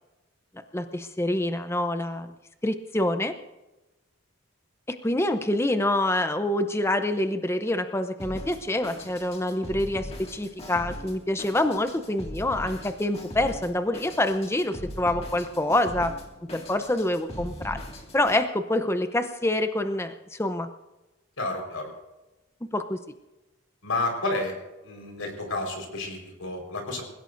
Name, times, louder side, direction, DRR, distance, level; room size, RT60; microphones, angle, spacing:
voice 1, 0.7-2.3 2.6-3.3 4.9-16.1 16.5-17.8 18.1-20.7 22.7-23.0, left 1 dB, 10° left, 8 dB, 0.6 m, -26 dB
Drum kit, 8.2-18.4, equal, 30° left, 2.0 m, -40 dB
voice 2, 21.4-21.9 23.8-24.5 24.8-27.0, left 2 dB, 90° left, 2 dB, 4.5 m, -30 dB
27.5 x 16.5 x 2.6 m, 1.1 s
head